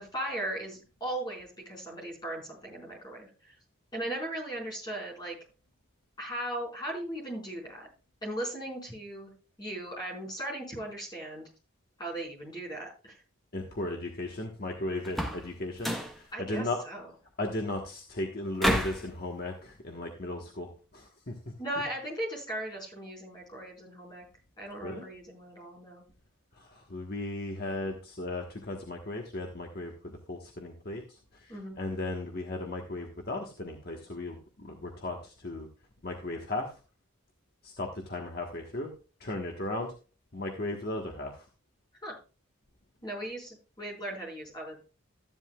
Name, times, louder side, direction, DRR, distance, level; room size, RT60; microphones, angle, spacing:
voice 1, 0.0-3.5 3.9-5.4 6.2-7.9 8.2-9.3 9.6-11.5 12.0-13.2 16.3-17.1 21.6-24.2 24.6-26.0 31.5-31.7 42.0-42.2 43.0-44.8, right 1 dB, 20° left, -2 dB, 4.7 m, -37 dB
voice 2, 13.5-15.9 16.5-16.8 17.4-20.7 20.9-21.3 24.8-25.1 26.9-31.0 31.8-35.7 36.0-36.7 37.6-38.9 39.2-39.9 40.3-41.3, left 2 dB, 45° left, 1 dB, 1.4 m, -36 dB
sound 1, 15.0-15.5 15.8-16.2 18.6-19.1, equal, ahead, 1.1 m, -29 dB
13.5 x 11.0 x 2.4 m, 0.34 s
head